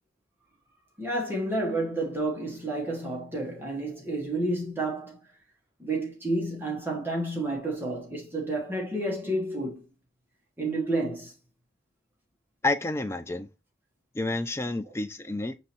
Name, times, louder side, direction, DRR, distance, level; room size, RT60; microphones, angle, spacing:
voice 1, 1.0-5.2 5.8-9.8 10.6-11.3, right 2 dB, 10° right, 0.9 m, -30 dB
voice 2, 12.6-13.5 14.1-15.6, left 2 dB, 15° left, 0.3 m, -29 dB
5.5 x 3.1 x 2.8 m
head